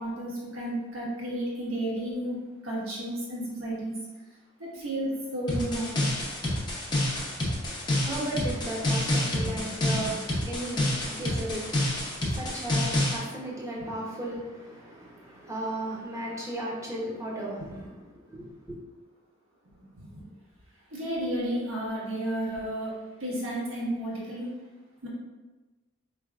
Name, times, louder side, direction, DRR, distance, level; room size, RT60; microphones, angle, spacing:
voice 1, 0.0-4.0 4.6-6.0 9.4-9.6 9.8-10.1 17.6-17.7 19.7-20.2 20.9-24.5 25.0-25.1, right 1 dB, 85° right, -6 dB, 1.4 m, -32 dB
sound 1, 5.5-13.2, left 1 dB, 20° left, 0.7 m, -28 dB
voice 2, 7.8-10.1 10.4-17.9 18.1-18.8, right 1 dB, 15° right, -4 dB, 0.7 m, -35 dB
4.3 x 3.2 x 2.4 m, 1.2 s
head